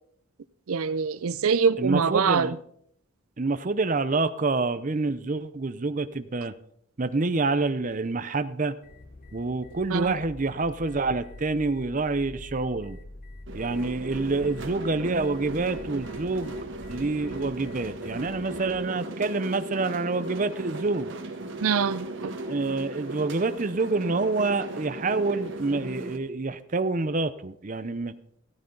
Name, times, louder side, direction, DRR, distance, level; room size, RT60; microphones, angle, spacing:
voice 1, 0.7-2.6 9.9-10.2 21.6-22.3, right 6 dB, 80° right, 0.5 m, -24 dB
voice 2, 1.8-2.5 3.4-6.5 7.0-8.8 9.3-13.0 13.5-16.5 16.9-21.1 22.5-28.1, right 3 dB, 35° right, 0.6 m, -27 dB
sound 1, 8.8-18.8, left 2 dB, 40° left, 0.7 m, -46 dB
sound 2, 13.5-26.2, right 1 dB, 55° right, 1.4 m, -37 dB
15.5 x 13.5 x 3.9 m
head